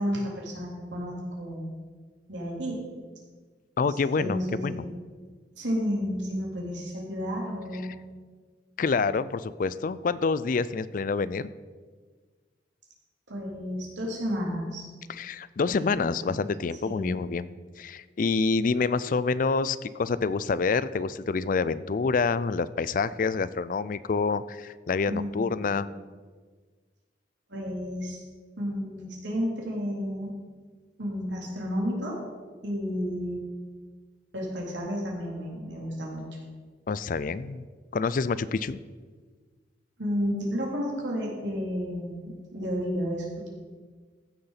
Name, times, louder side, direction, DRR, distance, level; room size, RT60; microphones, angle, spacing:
voice 1, 0.0-1.6 2.3-2.8 3.9-5.0 5.5-7.9 13.3-14.9 15.8-16.3 16.8-17.1 25.1-25.8 27.5-28.2 28.6-30.3 31.0-32.2 32.6-33.4 34.3-36.4 40.0-43.5, equal, 90° right, -2 dB, 3.4 m, -32 dB
voice 2, 3.8-4.8 8.8-11.5 15.1-17.5 17.8-25.9 36.9-37.7 37.9-38.8, left 4 dB, 45° left, 16 dB, 0.4 m, -27 dB
14.5 x 6.7 x 5.7 m, 1.5 s
head